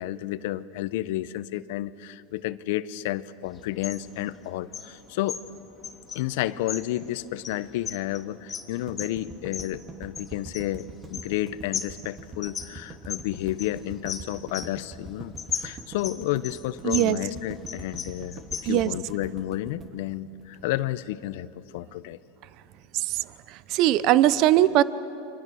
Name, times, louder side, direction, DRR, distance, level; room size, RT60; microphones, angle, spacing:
voice 1, 0.0-5.4 6.1-22.2, left 14 dB, 70° left, 15 dB, 0.9 m, -31 dB
sound 1, 3.5-18.9, left 7 dB, 30° left, 3.0 m, -38 dB
sound 2, 8.9-21.0, right 3 dB, 25° right, 2.4 m, -43 dB
voice 2, 16.8-17.2 18.7-18.9 22.9-23.2 23.7-24.8, right 14 dB, 55° right, 16 dB, 0.8 m, -20 dB
30.0 x 25.5 x 6.4 m, 2.9 s
supercardioid pair, 110°, 0 cm